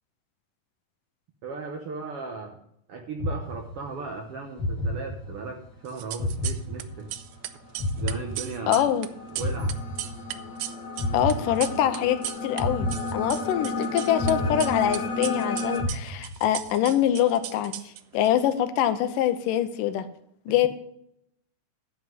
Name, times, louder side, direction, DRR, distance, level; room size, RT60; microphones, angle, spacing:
voice 1, 1.4-2.6 2.9-7.1 8.0-8.8 9.3-9.7, right 4 dB, 65° right, 3 dB, 1.4 m, -36 dB
sound 1, 3.2-4.1 4.6-5.6 6.2-7.3 7.8-9.0 9.4-10.6 11.0-12.0 12.6-13.7 14.2-15.4 15.8-16.7, left 1 dB, 65° left, 3.3 m, -31 dB
sound 2, 5.9-6.8 7.1-12.6 12.9-14.3 14.6-18.3, right 13 dB, 85° right, 1.6 m, -36 dB
sound 3, 7.2-15.8, left 3 dB, 50° left, 1.3 m, -33 dB
voice 2, 8.7-9.1 11.1-12.2 12.4-20.1 20.5-20.7, left 11 dB, 90° left, 10 dB, 2.4 m, -24 dB
11.0 x 5.5 x 7.7 m, 0.71 s
omnidirectional pair, 3.8 m